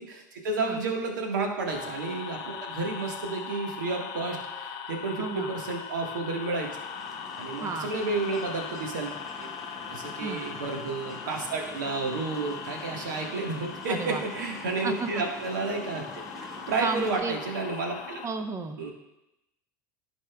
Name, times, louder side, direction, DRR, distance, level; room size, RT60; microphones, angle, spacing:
voice 1, 0.0-6.7 7.4-9.1 9.4-9.5 9.9-16.0 16.4-18.2 18.8-18.9, right 3 dB, 70° right, 2 dB, 1.5 m, -31 dB
sound 1, 1.7-18.3, left 7 dB, 50° left, 0.8 m, -40 dB
voice 2, 5.2-5.5 7.6-7.9 10.2-10.4 13.9-14.2 14.8-15.2 16.8-17.4 18.2-18.8, right 4 dB, 30° right, 8 dB, 0.9 m, -32 dB
sound 2, 6.5-17.2, equal, 5° right, 2.3 m, -45 dB
14.5 x 5.3 x 2.3 m, 0.89 s
figure-of-eight pair, 75°, 11 cm